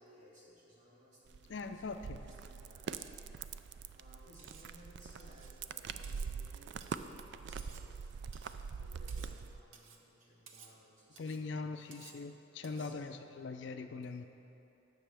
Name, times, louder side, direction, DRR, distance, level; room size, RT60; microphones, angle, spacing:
voice 1, 0.0-3.2 3.9-7.9 8.7-11.9 12.6-13.2, equal, 40° right, -6 dB, 2.2 m, -61 dB
sound 1, 1.3-9.6, right 6 dB, 60° right, 0.3 m, -44 dB
voice 2, 1.5-2.2 11.2-14.2, left 4 dB, 60° left, 7 dB, 0.4 m, -41 dB
Cutlery silverware, 4.4-4.7 5.2-5.6 6.0-6.3 6.8-7.1 7.6-7.9 8.3-8.6 9.1-9.4 9.7-10.0 10.5-10.8 11.2-11.4 11.9-12.2 12.6-12.9, right 6 dB, 85° right, 0.7 m, -57 dB
16.0 x 6.3 x 3.4 m, 3.0 s
head